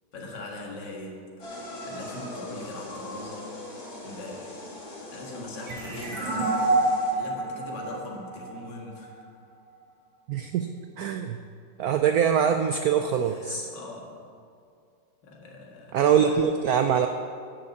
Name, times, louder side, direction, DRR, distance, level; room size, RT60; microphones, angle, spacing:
voice 1, 0.1-1.3 1.9-3.5 4.0-4.7 5.1-6.9 7.1-9.3 13.2-14.2 15.2-16.4, left 2 dB, 60° left, -1 dB, 2.3 m, -41 dB
sound 1, 1.4-7.1, left 1 dB, 75° left, 3.1 m, -41 dB
sound 2, 5.7-9.1, right 2 dB, 70° right, 2.7 m, -27 dB
voice 2, 10.3-10.7 11.0-11.4 11.8-13.7 15.9-17.1, right 8 dB, 90° right, 7 dB, 0.8 m, -23 dB
10.0 x 7.0 x 8.4 m, 2.3 s
omnidirectional pair, 2.2 m